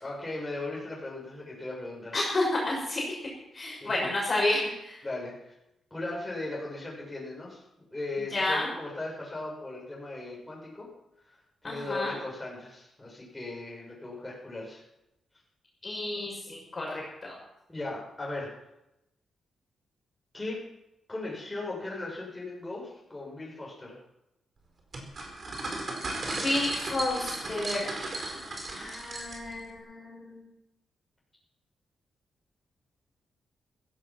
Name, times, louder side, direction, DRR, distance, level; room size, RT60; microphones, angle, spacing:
voice 1, 0.0-2.2 3.5-4.1 5.0-5.5 5.9-7.6 7.9-10.9 11.3-14.8 17.7-18.5 20.3-20.6 21.1-24.0, left 2 dB, 10° left, -4 dB, 6.5 m, -38 dB
voice 2, 2.1-3.0 3.5-5.0 8.2-8.7 11.6-12.2 15.8-17.3 26.3-27.9 28.7-30.4, left 2 dB, 30° left, -3 dB, 5.9 m, -31 dB
sound 1, 24.9-29.6, right 2 dB, 40° right, 4.6 m, -35 dB
15.5 x 15.0 x 6.0 m, 0.87 s
cardioid pair, 130°, 0 cm